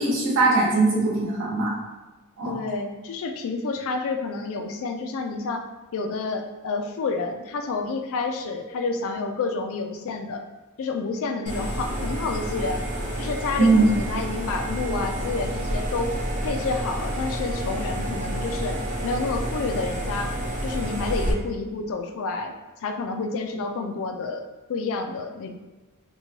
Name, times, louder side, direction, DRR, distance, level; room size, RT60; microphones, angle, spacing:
voice 1, 0.0-1.7 2.4-2.6 13.6-13.8, right 3 dB, 60° right, -6 dB, 1.0 m, -20 dB
voice 2, 2.4-5.7 5.9-10.4 10.8-12.8 13.2-16.2 16.4-18.8 19.0-20.3 20.6-22.5 22.8-25.5, left 3 dB, 65° left, 5 dB, 0.4 m, -29 dB
sound 1, 11.5-21.3, right 1 dB, 35° right, 0.5 m, -29 dB
2.9 x 2.2 x 2.8 m, 1.2 s
head